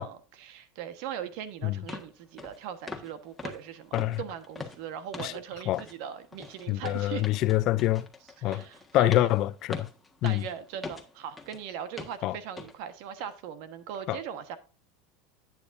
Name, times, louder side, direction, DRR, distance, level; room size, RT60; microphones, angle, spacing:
voice 1, 0.0-7.3 8.4-9.3 10.2-14.6, right 8 dB, 65° right, 1.3 m, -39 dB
sound 1, 1.3-1.4 1.9-2.1 2.4-2.6 2.9-3.1 3.4-5.4 5.7-6.0 6.3-11.6 12.0-12.2 12.6-12.7 13.2-13.3, left 4 dB, 10° left, 1.5 m, -42 dB
voice 2, 6.7-8.1 8.4-8.6 8.9-9.9 10.2-10.4 12.2-12.4 14.1-14.2, left 16 dB, 50° left, 0.5 m, -25 dB
10.0 x 8.9 x 2.6 m
supercardioid pair, 115°, 0 cm